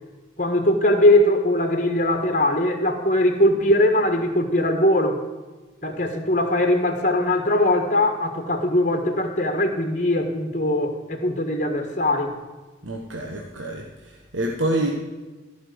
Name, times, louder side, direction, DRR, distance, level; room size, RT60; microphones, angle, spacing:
voice 1, 0.4-5.2 5.8-12.3, left 1 dB, 40° left, 5 dB, 1.6 m, -20 dB
voice 2, 12.8-14.9, right 1 dB, 90° right, 0 dB, 1.3 m, -27 dB
14.5 x 5.9 x 7.9 m, 1.3 s
head